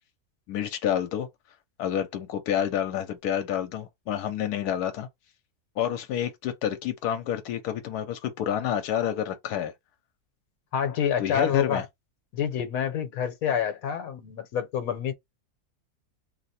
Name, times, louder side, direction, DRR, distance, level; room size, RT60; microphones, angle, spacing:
voice 1, 0.5-1.3 1.8-5.1 5.8-9.7 11.2-11.8, left 9 dB, 85° left, 1.1 m, -29 dB
voice 2, 10.7-11.9 12.3-15.1, left 8 dB, 70° left, 1.2 m, -27 dB
2.8 x 2.1 x 4.1 m
omnidirectional pair, 1.6 m